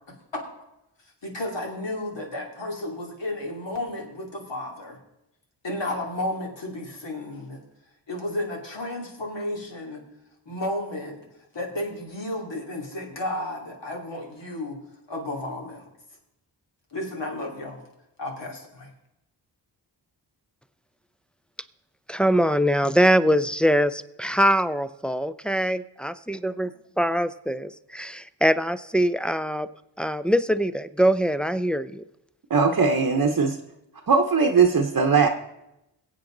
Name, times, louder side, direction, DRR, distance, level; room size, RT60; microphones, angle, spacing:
voice 1, 1.2-5.0 5.6-7.6 8.1-10.0 10.5-11.2 11.5-14.8 15.1-15.9 16.9-17.9 18.2-18.9, left 1 dB, 70° left, 0 dB, 2.8 m, -32 dB
voice 2, 22.1-26.7 27.0-29.7 30.0-32.0, equal, ahead, 12 dB, 0.4 m, -23 dB
voice 3, 32.5-33.6 34.1-35.3, right 5 dB, 45° right, 3 dB, 0.9 m, -19 dB
22.0 x 8.4 x 3.9 m, 0.89 s
wide cardioid pair, 100°, 45 cm